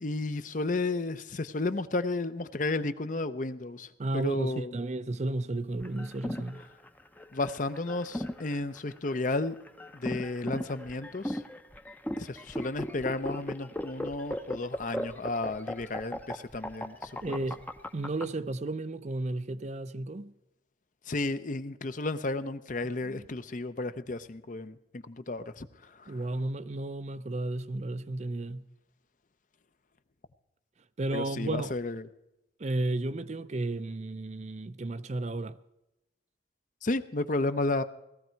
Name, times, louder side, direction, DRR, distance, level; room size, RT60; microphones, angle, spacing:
voice 1, 0.0-4.7 7.3-9.6 9.9-11.4 12.2-17.4 21.1-26.2 31.1-32.1 36.8-37.8, left 2 dB, 45° left, 0.7 m, -33 dB
voice 2, 4.0-6.6 17.2-17.6 17.9-20.3 23.0-23.3 26.1-28.6 31.0-31.7 32.6-35.6, right 2 dB, 40° right, 0.5 m, -33 dB
sound 1, 5.8-18.2, left 1 dB, 10° left, 0.6 m, -37 dB
18.0 x 14.0 x 4.5 m
head